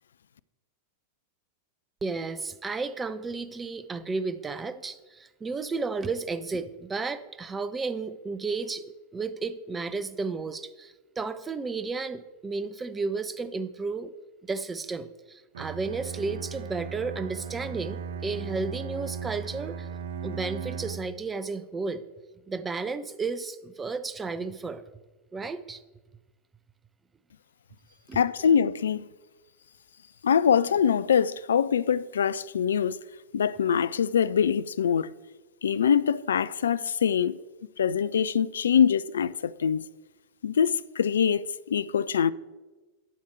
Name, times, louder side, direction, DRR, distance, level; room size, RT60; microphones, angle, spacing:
voice 1, 2.0-8.8 9.1-14.1 14.5-19.9 20.2-22.0 22.5-24.8 25.3-25.8 28.1-28.2, right 4 dB, 15° right, 0.6 m, -33 dB
Bowed string instrument, 15.5-21.2, right 7 dB, 60° right, 0.5 m, -37 dB
voice 2, 28.1-29.1 30.2-33.0 33.3-35.1 35.6-37.3 37.8-39.8 40.4-42.3, left 7 dB, 65° left, 0.3 m, -24 dB
12.0 x 7.2 x 4.6 m
figure-of-eight pair, 90°, 0 cm